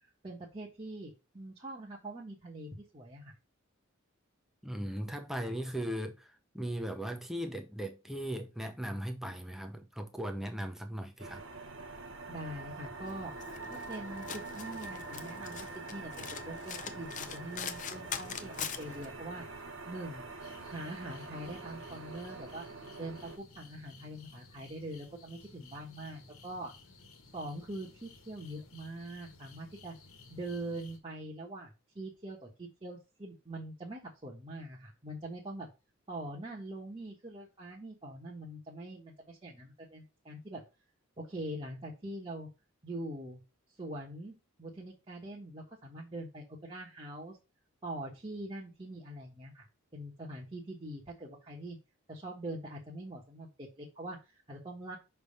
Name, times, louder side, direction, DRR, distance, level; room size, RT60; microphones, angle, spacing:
voice 1, 0.2-3.3 12.3-13.3 13.7-19.5 19.9-20.3 20.7-22.7 22.9-26.7 27.3-29.9 30.3-31.7 31.9-35.7 36.1-40.6 41.2-42.5 42.8-43.4 43.8-47.4 47.8-49.7 49.9-51.8 52.1-55.0, right 1 dB, 25° right, 1.2 m, -43 dB
voice 2, 4.6-11.4, equal, ahead, 0.8 m, -38 dB
sound 1, 11.2-23.4, right 3 dB, 60° right, 1.0 m, -45 dB
Domestic sounds home sounds, 13.1-19.1, left 7 dB, 35° left, 0.6 m, -43 dB
sound 2, 20.4-31.0, left 3 dB, 80° left, 1.3 m, -56 dB
6.0 x 3.5 x 5.4 m
head